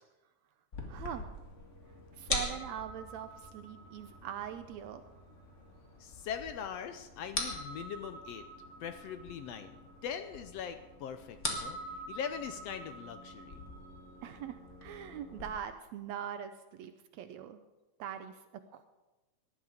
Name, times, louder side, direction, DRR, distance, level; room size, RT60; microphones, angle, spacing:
sound 1, 0.7-15.5, left 1 dB, 30° left, 1.7 m, -43 dB
voice 1, 0.9-1.3 2.2-5.0 14.2-17.6 18.0-18.9, right 9 dB, 75° right, 9 dB, 1.7 m, -42 dB
voice 2, 6.0-8.4 8.8-13.6, left 8 dB, 75° left, 9 dB, 1.5 m, -41 dB
19.0 x 11.0 x 5.0 m, 1.1 s
omnidirectional pair, 3.6 m